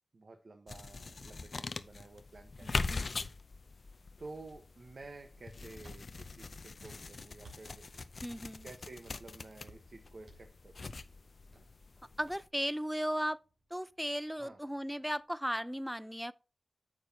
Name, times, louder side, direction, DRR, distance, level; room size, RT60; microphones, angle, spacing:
voice 1, 0.1-3.1 4.2-7.9 8.6-10.8 14.4-14.6, right 3 dB, 65° right, 1.1 m, -52 dB
sound 1, 0.7-12.5, left 3 dB, 60° left, 0.5 m, -42 dB
voice 2, 2.6-3.1 8.2-8.6 12.2-13.4 13.7-16.3, equal, 5° right, 0.4 m, -36 dB
sound 2, 5.8-15.2, right 1 dB, 85° right, 2.9 m, -63 dB
9.4 x 6.3 x 2.8 m
cardioid pair, 55°, 0 cm